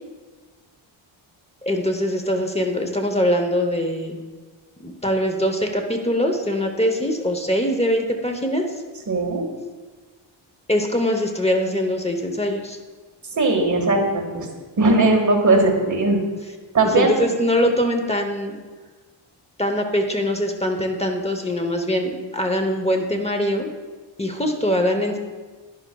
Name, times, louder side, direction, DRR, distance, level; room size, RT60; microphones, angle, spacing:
voice 1, 1.6-4.2 4.8-8.7 10.7-12.8 16.8-18.6 19.6-23.7 24.2-25.2, equal, 15° left, 4 dB, 0.8 m, -22 dB
voice 2, 9.1-9.4 13.3-14.5 14.8-16.2 16.7-17.1, right 2 dB, 40° right, 0 dB, 1.7 m, -18 dB
11.0 x 10.5 x 2.3 m, 1.4 s
wide cardioid pair, 130°, 47 cm